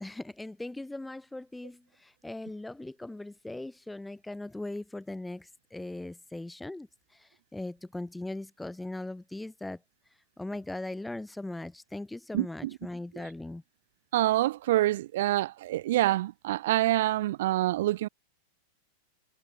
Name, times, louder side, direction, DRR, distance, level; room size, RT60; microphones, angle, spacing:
voice 1, 0.0-6.9 7.1-9.8 10.4-13.6, left 2 dB, 5° left, 4.0 m, -39 dB
voice 2, 12.3-12.7 14.1-18.1, right 15 dB, 55° right, 0.7 m, -26 dB
figure-of-eight pair, 90°, 0 cm